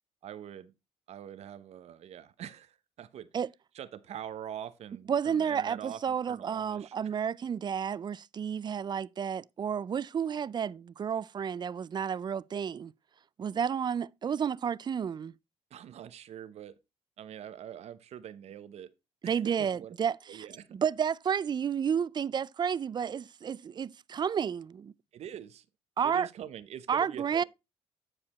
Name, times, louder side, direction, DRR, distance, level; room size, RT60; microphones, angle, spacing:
voice 1, 0.2-0.7 1.1-3.3 3.7-6.9 15.7-16.8 17.2-18.9 19.2-19.9 20.3-20.7 25.1-25.6 26.0-27.4, right 10 dB, 65° right, 0.7 m, -44 dB
voice 2, 5.1-12.9 13.4-15.3 19.2-20.4 20.7-24.9 26.0-26.3 26.9-27.4, right 7 dB, 40° right, 0.4 m, -31 dB
9.8 x 4.9 x 4.1 m
supercardioid pair, 70°, 12 cm